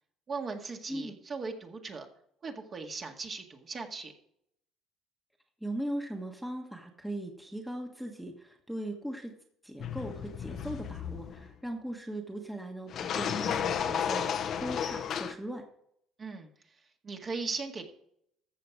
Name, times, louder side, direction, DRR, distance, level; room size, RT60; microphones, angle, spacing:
voice 1, 0.3-2.1 2.4-4.1 16.2-16.8 17.0-17.8, right 4 dB, 35° right, 2 dB, 1.9 m, -38 dB
voice 2, 5.6-9.3 9.6-15.7, right 1 dB, 5° right, 2 dB, 1.4 m, -39 dB
sound 1, 9.8-11.5 12.9-15.3, left 8 dB, 55° left, 0.9 m, -33 dB
14.0 x 6.9 x 4.8 m, 0.71 s
cardioid pair, 105°, 0 cm